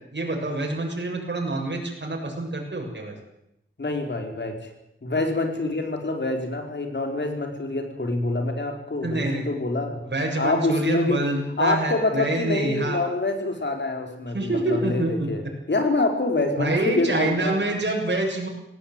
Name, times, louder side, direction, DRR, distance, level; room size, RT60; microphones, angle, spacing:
voice 1, 0.1-3.2 9.0-9.4 10.1-13.0 14.3-15.3 16.6-18.5, right 2 dB, 55° right, 1 dB, 7.0 m, -26 dB
voice 2, 3.8-4.7 5.0-10.0 10.4-11.2 11.6-15.4 15.7-17.6, left 2 dB, 55° left, 4 dB, 4.7 m, -26 dB
18.5 x 18.0 x 9.1 m, 0.83 s
wide cardioid pair, 55°, 21 cm